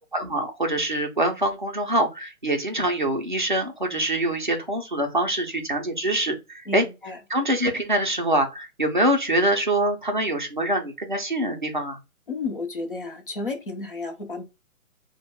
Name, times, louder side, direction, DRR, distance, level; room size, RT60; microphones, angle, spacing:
voice 1, 0.1-6.8 7.3-12.0, right 1 dB, 35° right, 0.4 m, -24 dB
voice 2, 6.7-7.2 12.3-14.4, left 3 dB, 40° left, 0.7 m, -32 dB
3.3 x 2.1 x 2.2 m
hypercardioid pair, 175°, 44 cm